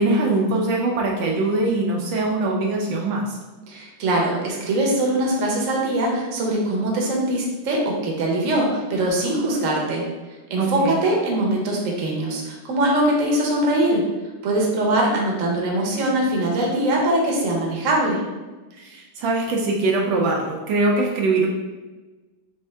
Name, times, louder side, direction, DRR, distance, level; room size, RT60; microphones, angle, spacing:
voice 1, 0.0-3.4 10.6-11.0 18.7-21.5, right 2 dB, 75° right, -1 dB, 1.3 m, -22 dB
voice 2, 3.7-10.1 10.5-14.1 14.4-18.2, right 1 dB, 55° right, -2 dB, 1.1 m, -22 dB
3.5 x 3.5 x 3.3 m, 1.2 s
omnidirectional pair, 2.1 m